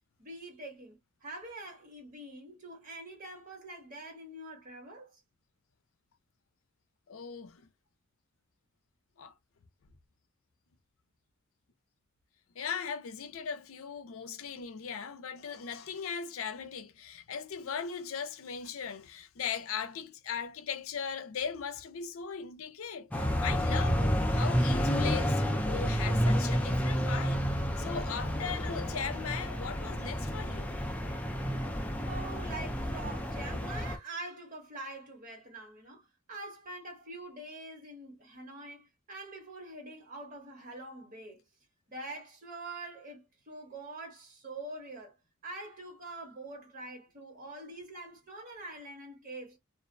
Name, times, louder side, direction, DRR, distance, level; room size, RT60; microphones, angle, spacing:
voice 1, 0.2-5.2 32.1-41.4 41.9-45.1 45.4-49.6, right 2 dB, 40° right, 1.3 m, -45 dB
voice 2, 7.1-7.6 9.2-9.3 12.6-27.4 27.8-30.8, left 6 dB, 80° left, 0.5 m, -38 dB
sound 1, 23.1-34.0, equal, 5° left, 0.4 m, -30 dB
2.4 x 2.0 x 2.5 m
head